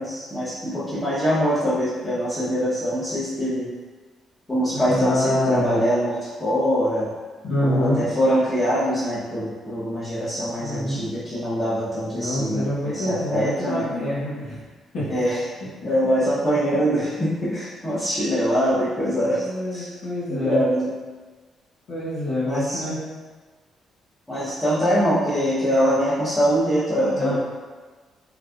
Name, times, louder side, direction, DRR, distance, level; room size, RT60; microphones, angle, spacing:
voice 1, 0.0-3.7 4.5-7.1 7.6-13.9 15.1-15.4 15.8-19.9 20.3-20.9 22.4-22.8 24.3-27.4, equal, 15° left, -12 dB, 1.1 m, -23 dB
voice 2, 4.7-5.8 7.4-8.0 10.6-11.0 12.1-14.6 14.9-15.1 19.4-20.6 21.9-23.0 27.1-27.4, left 1 dB, 70° left, -10 dB, 1.2 m, -26 dB
3.4 x 3.0 x 2.5 m, 1.4 s
cardioid pair, 90°, 0 cm